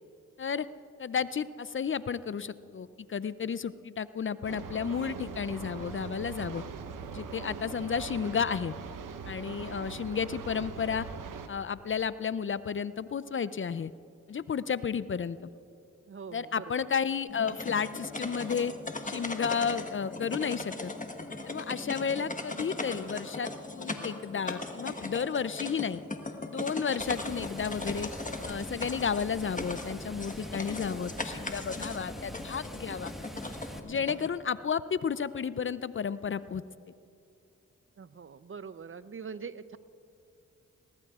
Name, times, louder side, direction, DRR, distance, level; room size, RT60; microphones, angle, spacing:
voice 1, 1.0-6.6 7.1-8.7 9.3-11.1 11.5-13.9 14.3-15.5 16.3-18.7 19.0-20.9 21.4-26.0 26.5-28.1 28.4-33.1 33.8-36.6, left 6 dB, 40° left, 16 dB, 0.5 m, -32 dB
sound 1, 4.4-11.5, right 5 dB, 75° right, 0.9 m, -41 dB
voice 2, 16.1-16.9 38.0-39.8, right 5 dB, 40° right, 15 dB, 0.6 m, -43 dB
sound 2, 17.3-34.3, left 2 dB, 25° left, 1.3 m, -39 dB
Water, 27.0-33.8, equal, ahead, 1.6 m, -44 dB
21.5 x 19.5 x 2.4 m, 2.6 s
supercardioid pair, 40°, 32 cm